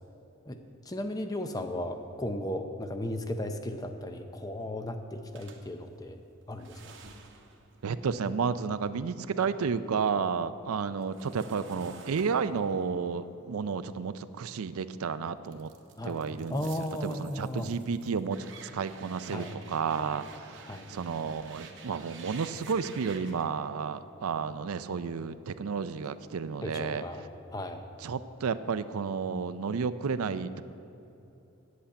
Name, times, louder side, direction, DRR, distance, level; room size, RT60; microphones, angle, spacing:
voice 1, 0.9-6.2 6.5-6.9 16.0-16.2 16.5-17.7 19.3-19.5 20.7-20.9 26.6-27.2 27.5-27.8, left 1 dB, 15° left, 6 dB, 0.6 m, -35 dB
sound 1, 5.3-9.6 10.0-14.9 15.4-23.4, right 4 dB, 55° right, 0.9 m, -51 dB
voice 2, 7.8-15.7 16.0-16.7 17.0-27.0 28.0-30.6, right 5 dB, 85° right, 13 dB, 0.4 m, -32 dB
8.4 x 8.0 x 8.5 m, 2.9 s
head